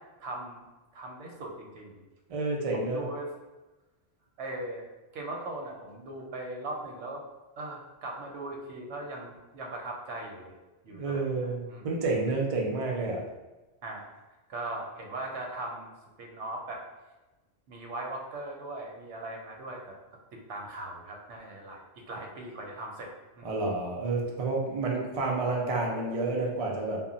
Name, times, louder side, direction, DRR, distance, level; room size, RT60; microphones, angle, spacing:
voice 1, 0.2-0.6 0.9-2.0 2.7-3.3 4.4-4.8 5.1-7.2 7.6-10.5 10.8-11.9 13.8-14.1 14.5-15.9 16.2-16.8 17.7-20.0 20.3-23.1 23.4-23.5, right 2 dB, 90° right, 0 dB, 0.9 m, -39 dB
voice 2, 2.3-3.0 10.9-13.2 23.4-27.1, right 3 dB, 65° right, -1 dB, 0.3 m, -30 dB
2.1 x 2.0 x 3.7 m, 1.1 s
omnidirectional pair, 1.2 m